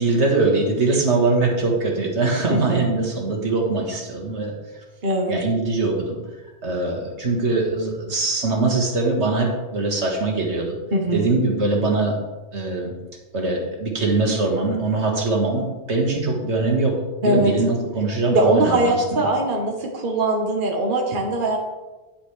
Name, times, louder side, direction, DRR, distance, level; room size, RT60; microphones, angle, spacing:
voice 1, 0.0-4.5 5.3-6.2 6.6-10.8 11.1-12.1 12.5-12.9 13.3-16.9 17.2-19.0, right 3 dB, 80° right, 0 dB, 2.0 m, -22 dB
voice 2, 2.5-2.8 5.0-5.3 10.9-11.2 17.2-17.5 18.3-21.6, right 1 dB, 50° right, 0 dB, 1.5 m, -21 dB
10.0 x 8.7 x 3.4 m, 1.2 s
omnidirectional pair, 1.2 m